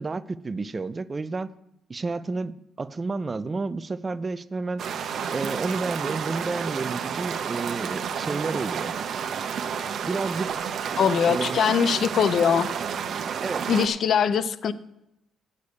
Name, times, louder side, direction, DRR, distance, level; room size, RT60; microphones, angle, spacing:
voice 1, 0.0-1.5 1.9-4.8 5.3-8.9 10.1-10.6 11.3-11.6 13.4-13.7, right 3 dB, 30° right, 16 dB, 0.5 m, -30 dB
sound 1, 4.8-13.9, right 7 dB, 65° right, 0.9 m, -30 dB
voice 2, 11.0-12.7 13.7-14.7, left 7 dB, 60° left, 15 dB, 0.6 m, -22 dB
8.4 x 6.5 x 8.4 m, 0.84 s
cardioid pair, 90°, 0 cm